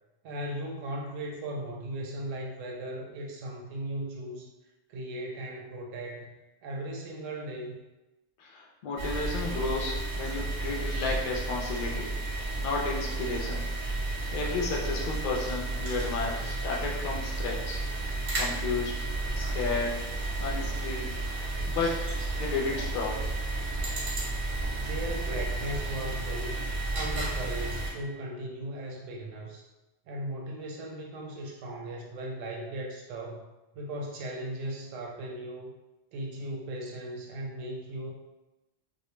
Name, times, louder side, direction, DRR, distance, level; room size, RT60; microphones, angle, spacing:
voice 1, 0.2-4.5 4.9-6.3 6.6-7.8 24.7-26.6 26.9-29.7 30.1-33.4 33.7-35.7 36.1-38.1, right 1 dB, 85° right, 0 dB, 0.9 m, -37 dB
voice 2, 8.4-12.1 12.6-13.7 14.3-17.8 18.3-19.1 19.3-20.0 20.4-21.1 21.7-22.0 22.4-23.2, left 3 dB, 60° left, -2 dB, 0.5 m, -32 dB
sound 1, 9.0-27.9, right 2 dB, 50° right, 0.6 m, -32 dB
2.2 x 2.0 x 3.1 m, 1.0 s
omnidirectional pair, 1.3 m